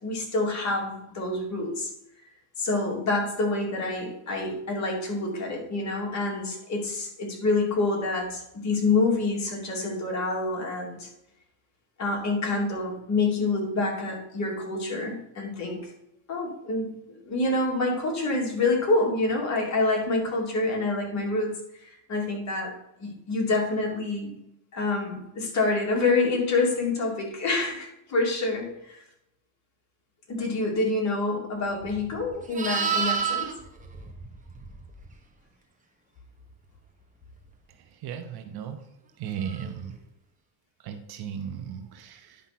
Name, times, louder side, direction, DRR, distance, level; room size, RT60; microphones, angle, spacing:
voice 1, 0.0-1.9 2.2-2.3 2.6-11.1 12.0-15.9 16.3-22.7 23.0-24.4 24.7-29.0 30.3-33.5, left 3 dB, 35° left, -1 dB, 2.9 m, -27 dB
Livestock farm animals working animals, 31.8-35.1 39.5-39.7, right 6 dB, 15° right, 1.4 m, -30 dB
voice 2, 38.0-38.8 39.2-39.9 40.8-42.5, right 8 dB, 50° right, 7 dB, 1.1 m, -36 dB
10.0 x 5.3 x 6.0 m, 0.85 s
cardioid pair, 135°, 47 cm